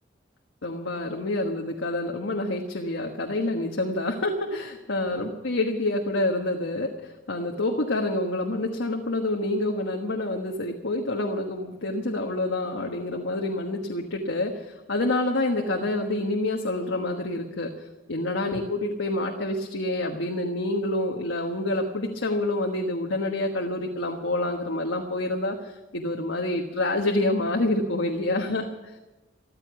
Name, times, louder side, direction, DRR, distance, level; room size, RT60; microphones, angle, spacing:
voice 1, 0.6-17.7 18.1-28.9, left 2 dB, 80° left, 2 dB, 1.4 m, -27 dB
14.5 x 14.0 x 7.1 m, 1.1 s
head